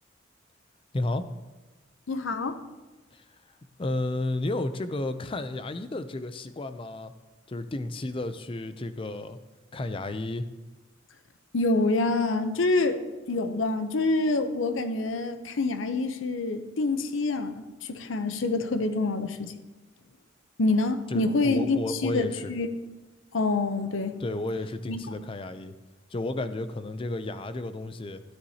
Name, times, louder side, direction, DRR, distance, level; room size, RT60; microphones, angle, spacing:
voice 1, 0.9-1.2 3.1-3.3 3.8-7.1 7.5-9.4 9.7-10.5 21.1-22.6 24.2-25.8 26.1-28.2, left 2 dB, 25° left, 11 dB, 0.4 m, -32 dB
voice 2, 2.1-2.6 11.5-13.0 13.3-19.5 20.6-22.7 23.3-24.2 24.9-25.0, left 3 dB, 75° left, 9 dB, 0.7 m, -26 dB
12.5 x 9.9 x 2.8 m, 1.2 s
head